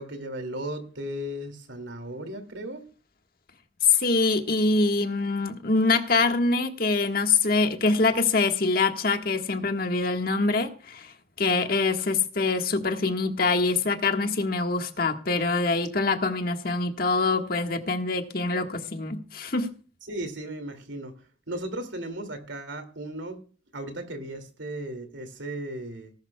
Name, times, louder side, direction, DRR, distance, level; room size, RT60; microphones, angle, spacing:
voice 1, 0.0-2.8 20.1-21.2 21.5-23.4 23.7-26.1, right 1 dB, 75° right, 8 dB, 2.5 m, -36 dB
voice 2, 3.9-11.1 11.4-19.7, left 3 dB, 50° left, 5 dB, 1.6 m, -24 dB
19.0 x 11.5 x 2.3 m, 0.39 s
head